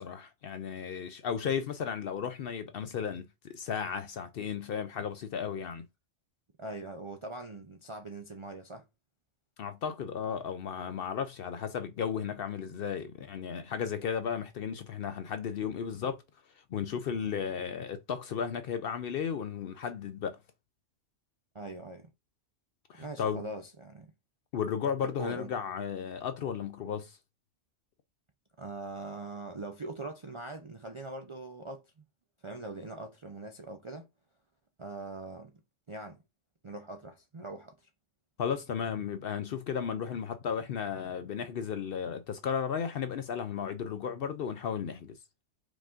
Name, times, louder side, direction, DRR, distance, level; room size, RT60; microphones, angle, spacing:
voice 1, 0.0-5.9 9.6-16.2 16.7-20.4 22.9-23.4 24.5-27.2 38.4-45.1, left 7 dB, 60° left, 0.6 m, -34 dB
voice 2, 6.6-8.8 17.2-17.3 21.5-22.1 23.0-24.1 25.0-25.5 28.6-32.0 32.4-34.1 34.8-35.5 35.9-36.2 36.6-37.8, right 2 dB, 45° right, 0.4 m, -42 dB
4.8 x 2.5 x 3.7 m
omnidirectional pair, 1.3 m